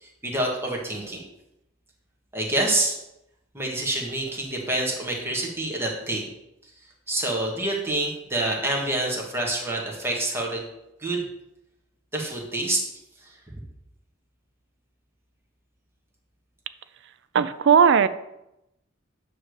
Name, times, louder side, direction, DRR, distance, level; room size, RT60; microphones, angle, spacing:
voice 1, 0.0-1.2 2.3-2.9 3.5-6.3 7.1-10.6 11.0-11.2 12.1-12.8, right 1 dB, 10° right, -2 dB, 1.5 m, -27 dB
voice 2, 17.3-18.1, right 7 dB, 60° right, 13 dB, 0.4 m, -17 dB
8.8 x 3.3 x 6.4 m, 0.87 s
head